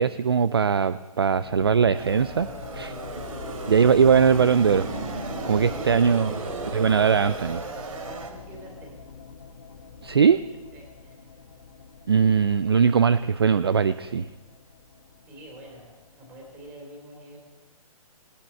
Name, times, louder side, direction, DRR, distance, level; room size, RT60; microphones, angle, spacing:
voice 1, 0.0-2.5 2.7-2.9 3.7-4.9 5.4-6.3 6.7-7.6 10.0-10.4 12.1-14.3, right 6 dB, 45° right, 15 dB, 0.4 m, -20 dB
sound 1, 1.3-16.7, left 5 dB, 40° left, 1.7 m, -43 dB
sound 2, 2.0-8.3, right 3 dB, 65° right, 2.9 m, -35 dB
voice 2, 2.9-3.7 5.5-7.2 7.9-9.0 10.7-11.2 15.3-17.4, right 1 dB, 10° right, -1 dB, 3.3 m, -46 dB
18.0 x 18.0 x 4.5 m, 1.2 s
hypercardioid pair, 180°, 19 cm